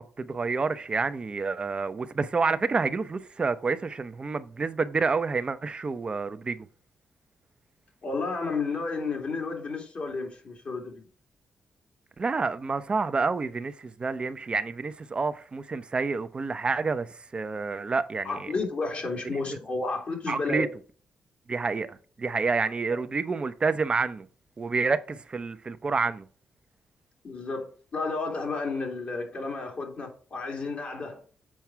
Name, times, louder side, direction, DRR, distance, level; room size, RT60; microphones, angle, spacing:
voice 1, 0.0-6.7 12.2-18.5 19.3-19.4 20.3-20.7 21.5-24.3 24.6-26.2, right 4 dB, 40° right, 0.7 m, -28 dB
voice 2, 8.0-11.0 18.2-20.7 27.2-31.2, left 3 dB, 55° left, 2.6 m, -32 dB
7.5 x 4.6 x 4.6 m
cardioid pair, 60°, 3 cm